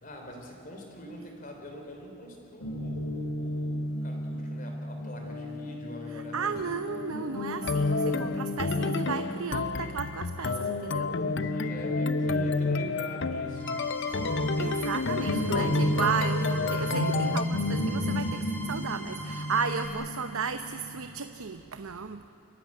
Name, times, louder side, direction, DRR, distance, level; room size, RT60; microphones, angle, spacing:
voice 1, 0.0-6.6 10.5-13.8, equal, 40° left, 2 dB, 3.4 m, -45 dB
Guitar, 2.6-10.3 10.6-21.0, left 1 dB, 85° left, 2.3 m, -32 dB
voice 2, 6.1-11.1 14.6-22.2, right 5 dB, 80° right, 9 dB, 0.8 m, -34 dB
sound 1, 7.6-17.4, left 4 dB, 55° left, 0.6 m, -31 dB
sound 2, 13.6-19.9, equal, 10° left, 3.0 m, -42 dB
28.5 x 15.5 x 9.7 m, 3.0 s
head